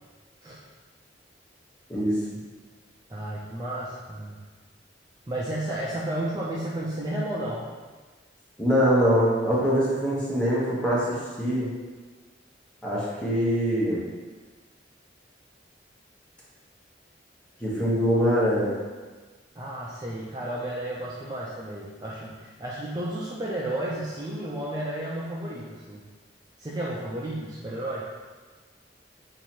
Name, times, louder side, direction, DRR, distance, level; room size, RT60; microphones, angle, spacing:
voice 1, 3.1-4.4 5.3-7.6 19.6-26.0 26.6-28.1, right 1 dB, 20° right, -6 dB, 0.4 m, -32 dB
voice 2, 8.6-11.7 12.8-14.0 17.6-18.7, equal, 5° left, -7 dB, 0.9 m, -23 dB
2.9 x 2.7 x 4.3 m, 1.4 s
head